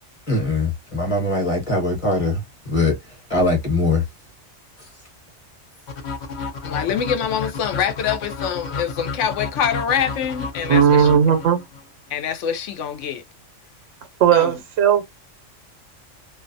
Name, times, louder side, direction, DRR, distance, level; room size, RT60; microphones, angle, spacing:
voice 1, 0.3-4.1 4.8-4.9, left 2 dB, 30° left, 1.0 m, -22 dB
sound 1, 5.9-11.8, left 5 dB, 50° left, 0.6 m, -31 dB
voice 2, 6.6-11.1 12.1-13.2 14.3-14.6, left 8 dB, 75° left, 0.9 m, -25 dB
voice 3, 10.7-11.6 14.2-15.1, right 8 dB, 80° right, 0.9 m, -16 dB
2.5 x 2.2 x 2.6 m
omnidirectional pair, 1.3 m